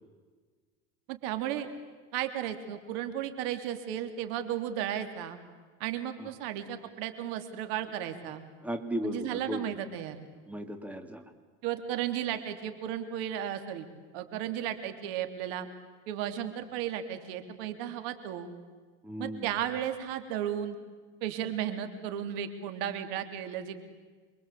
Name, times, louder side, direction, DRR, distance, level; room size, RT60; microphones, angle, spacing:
voice 1, 1.1-1.7 2.1-5.4 5.8-8.4 9.0-10.2 11.6-13.9 14.1-15.7 16.1-18.5 19.2-20.8 21.2-23.8, right 10 dB, 80° right, 8 dB, 3.4 m, -34 dB
voice 2, 8.6-9.8 10.5-11.2 19.0-19.5, equal, 5° right, 6 dB, 2.3 m, -36 dB
28.0 x 23.5 x 8.4 m, 1.4 s
cardioid pair, 130°, 29 cm